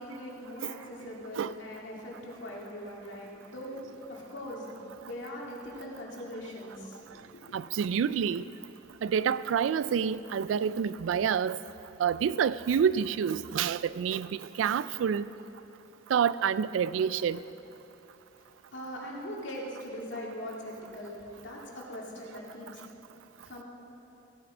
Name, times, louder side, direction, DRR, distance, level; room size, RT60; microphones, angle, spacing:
voice 1, 0.0-7.4 18.3-22.8 23.5-23.6, equal, 75° left, 2.1 m, -41 dB
voice 2, 7.5-8.4 9.0-11.6 12.0-15.3 16.1-17.4, right 7 dB, 90° right, 0.3 m, -28 dB
16.0 x 7.8 x 5.0 m
head